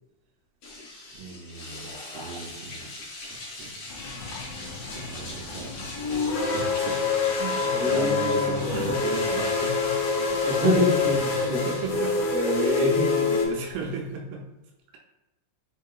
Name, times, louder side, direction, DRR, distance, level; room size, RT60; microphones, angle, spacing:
sound 1, 0.6-14.1, left 2 dB, 65° left, 2.5 m, -42 dB
voice 1, 1.1-2.9 3.3-3.9 4.1-4.2 4.6-5.9 6.5-10.5 11.2-12.4 12.6-12.8 13.2-14.5, right 4 dB, 85° right, 1 dB, 2.3 m, -36 dB
sound 2, 3.9-13.4, left 5 dB, 85° left, 1.3 m, -26 dB
voice 2, 7.7-8.8 10.4-11.6 12.3-13.3, equal, 60° right, -6 dB, 2.0 m, -26 dB
5.3 x 3.6 x 2.3 m, 1.0 s
omnidirectional pair, 3.9 m